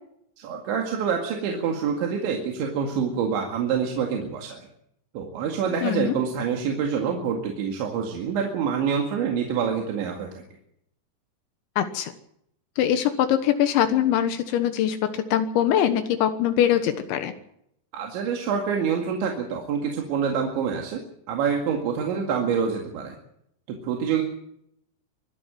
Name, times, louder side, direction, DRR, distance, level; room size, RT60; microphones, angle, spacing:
voice 1, 0.4-4.7 5.1-10.4 17.9-21.0 21.3-23.2 23.7-24.2, right 6 dB, 80° right, 2 dB, 4.4 m, -26 dB
voice 2, 5.8-6.1 11.8-12.1 12.8-17.3, left 10 dB, 80° left, 9 dB, 3.5 m, -22 dB
24.5 x 12.5 x 9.2 m, 0.75 s
omnidirectional pair, 5.3 m